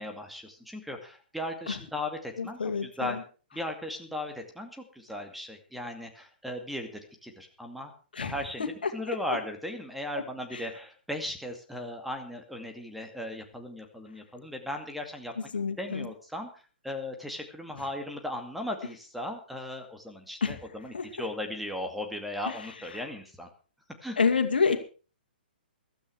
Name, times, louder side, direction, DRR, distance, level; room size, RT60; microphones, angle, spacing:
voice 1, 0.0-3.2 3.5-6.9 7.2-7.9 8.2-15.3 15.8-16.5 16.8-23.5 24.0-24.2, left 1 dB, ahead, 4 dB, 2.3 m, -37 dB
voice 2, 2.4-3.2 8.1-9.2 10.1-10.2 10.5-10.7 15.4-16.1 17.8-17.9 20.4-20.6 20.9-21.1 22.4-23.0 24.2-24.8, left 5 dB, 70° left, 6 dB, 2.5 m, -29 dB
15.0 x 13.0 x 4.8 m, 0.37 s
figure-of-eight pair, 120°, 5 cm